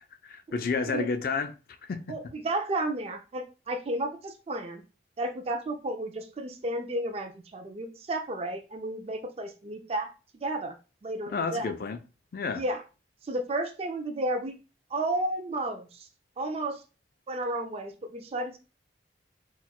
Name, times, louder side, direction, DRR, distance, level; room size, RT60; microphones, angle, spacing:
voice 1, 0.0-1.5 1.8-2.2 11.3-12.0 12.3-12.6, left 4 dB, 50° left, 0.4 m, -31 dB
voice 2, 2.1-4.8 5.2-10.1 10.3-10.7 11.0-11.7 12.5-12.8 13.2-14.5 14.9-16.1 16.4-16.8 17.3-18.6, right 1 dB, 35° right, 0.4 m, -32 dB
4.2 x 2.3 x 2.3 m
head